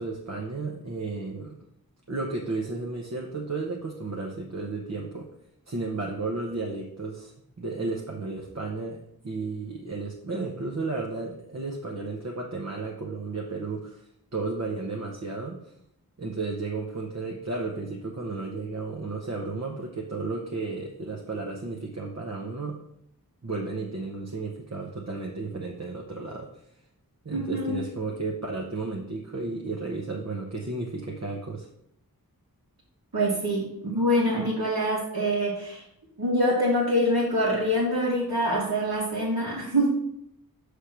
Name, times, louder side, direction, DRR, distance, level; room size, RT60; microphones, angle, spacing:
voice 1, 0.0-1.6 2.1-5.3 5.7-15.7 16.2-22.8 23.4-26.5 27.2-31.7, right 3 dB, 45° right, 0 dB, 0.8 m, -33 dB
voice 2, 27.3-27.8 33.1-35.8 36.2-39.9, equal, 80° right, -8 dB, 1.7 m, -25 dB
6.4 x 3.4 x 5.7 m, 0.76 s
wide cardioid pair, 60°, 36 cm